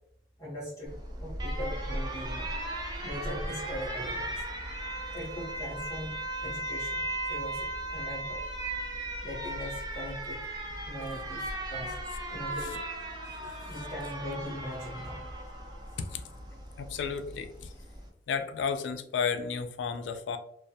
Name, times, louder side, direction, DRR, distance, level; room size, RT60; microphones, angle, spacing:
voice 1, 0.4-0.9 1.2-2.4 3.0-4.5 5.1-8.4 9.2-12.0 12.3-12.8 13.4-15.3, equal, 20° left, -7 dB, 0.7 m, -40 dB
Alarm, 0.9-18.1, right 1 dB, 25° right, 0.4 m, -37 dB
voice 2, 16.8-17.7 18.3-20.4, left 6 dB, 70° left, 9 dB, 0.3 m, -33 dB
2.2 x 2.1 x 2.6 m, 0.70 s
head